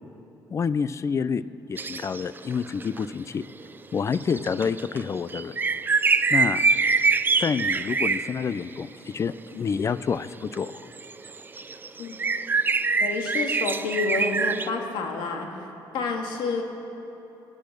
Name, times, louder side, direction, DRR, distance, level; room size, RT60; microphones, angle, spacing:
voice 1, 0.5-1.4 1.7-3.5 3.9-5.5 6.3-6.6 7.4-10.9, left 6 dB, 35° left, 16 dB, 0.4 m, -28 dB
sound 1, 1.8-3.0 3.6-3.7 4.1-8.5 10.5-14.7, right 4 dB, 25° right, 0.4 m, -24 dB
voice 2, 13.0-15.5 15.9-16.6, left 4 dB, 80° left, 3 dB, 1.9 m, -29 dB
22.5 x 8.6 x 6.6 m, 3.0 s
cardioid pair, 105°, 8 cm